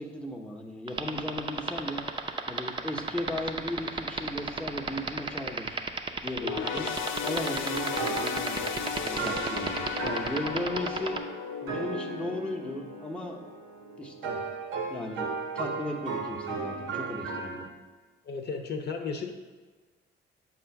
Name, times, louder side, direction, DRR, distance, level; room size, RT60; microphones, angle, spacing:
voice 1, 0.0-2.0 2.5-5.8 6.2-6.9 7.2-11.2 11.6-13.4 14.0-14.4 14.9-15.3 15.5-17.7, left 1 dB, 5° left, 0 dB, 0.8 m, -36 dB
sound 1, 0.9-11.2, right 4 dB, 25° right, 0.5 m, -30 dB
sound 2, 6.4-14.0 14.5-14.6 15.5-15.6, left 6 dB, 80° left, 0.6 m, -35 dB
sound 3, 7.7-17.7, right 4 dB, 90° right, 0.8 m, -36 dB
voice 2, 18.2-19.3, left 5 dB, 55° left, 4 dB, 0.8 m, -34 dB
7.3 x 2.5 x 5.7 m, 1.3 s
cardioid pair, 90°, 20 cm